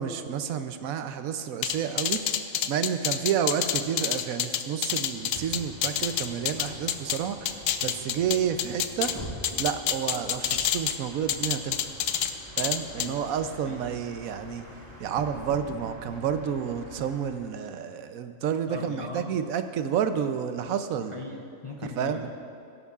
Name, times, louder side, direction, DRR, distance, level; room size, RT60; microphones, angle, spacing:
voice 1, 0.0-2.2 2.7-9.2 9.6-11.8 12.6-14.6 15.0-21.2 22.0-22.3, right 8 dB, 80° right, 9 dB, 1.1 m, -30 dB
sound 1, 1.6-7.2 7.5-9.1 9.4-11.0 11.3-12.3 12.6-13.1, left 10 dB, 85° left, 1.0 m, -27 dB
Bus, 5.1-17.5, equal, 30° right, 2.1 m, -45 dB
voice 2, 18.7-19.2 21.1-22.3, left 3 dB, 45° left, 0 dB, 0.4 m, -38 dB
17.0 x 11.0 x 2.4 m, 2.6 s
omnidirectional pair, 1.4 m